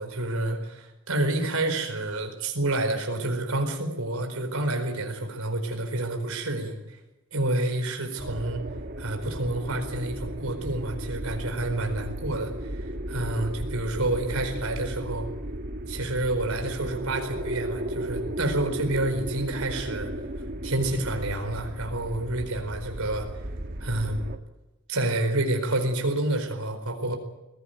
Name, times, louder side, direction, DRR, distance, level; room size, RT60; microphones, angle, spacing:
voice 1, 0.0-7.0 7.3-8.6 9.0-15.3 15.9-20.1 20.6-23.3 23.8-24.2 24.9-27.2, right 2 dB, 85° right, 5 dB, 4.6 m, -29 dB
sound 1, 8.2-24.4, right 1 dB, 45° right, 1.6 m, -35 dB
22.0 x 16.5 x 9.3 m, 1.0 s
head